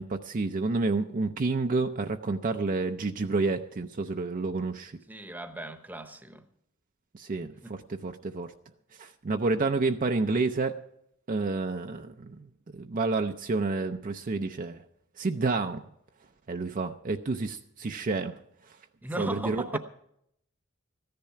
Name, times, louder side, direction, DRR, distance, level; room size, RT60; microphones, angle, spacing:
voice 1, 0.0-4.9 7.1-8.5 9.0-10.8 11.3-12.5 12.7-14.8 15.2-15.8 16.5-18.4 19.2-19.8, right 3 dB, 40° right, 0.5 m, -29 dB
voice 2, 5.1-6.4 7.6-7.7 19.0-19.8, right 1 dB, 10° right, 0.9 m, -37 dB
14.5 x 10.5 x 5.6 m
head